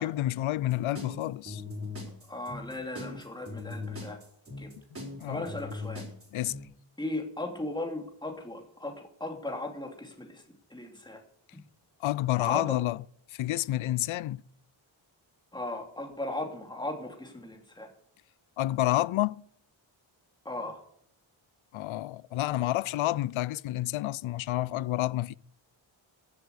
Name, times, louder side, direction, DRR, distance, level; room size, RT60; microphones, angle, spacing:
voice 1, 0.0-1.6 5.2-5.4 6.3-6.6 12.0-13.0 13.3-14.4 18.6-19.4 21.7-25.3, left 15 dB, 75° left, 0.5 m, -29 dB
sound 1, 0.6-6.6, left 3 dB, 30° right, 4.7 m, -39 dB
voice 2, 2.3-4.2 4.6-4.7 5.3-6.0 7.0-10.4 10.7-11.2 12.4-12.8 15.5-17.9 20.4-20.8, left 2 dB, 10° left, 2.9 m, -37 dB
15.0 x 8.2 x 8.3 m
wide cardioid pair, 100°, 48 cm